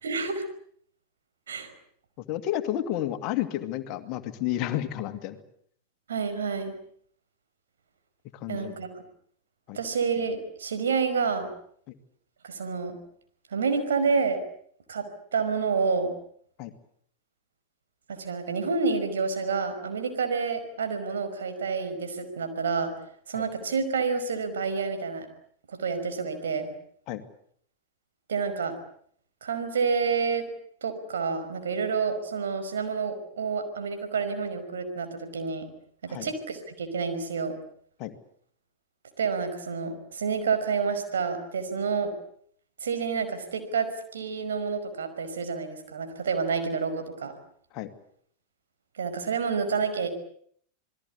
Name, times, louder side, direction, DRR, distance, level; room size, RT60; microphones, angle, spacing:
voice 1, 0.0-0.4 1.5-1.7 6.1-6.8 8.5-8.9 9.7-11.5 12.4-13.0 13.5-14.4 14.9-16.1 18.1-22.9 23.3-25.3 25.7-26.7 28.3-28.8 29.4-30.5 30.8-35.7 36.0-37.6 39.2-42.1 42.8-47.3 49.0-50.1, right 5 dB, 65° right, 7 dB, 5.2 m, -29 dB
voice 2, 2.2-5.4 8.3-8.7 9.7-9.8 16.6-16.7 23.3-23.4 27.1-27.2 36.1-36.3 38.0-38.1 47.7-47.9, left 12 dB, 40° left, 9 dB, 2.3 m, -31 dB
28.5 x 20.5 x 8.4 m, 0.63 s
figure-of-eight pair, 90°, 0 cm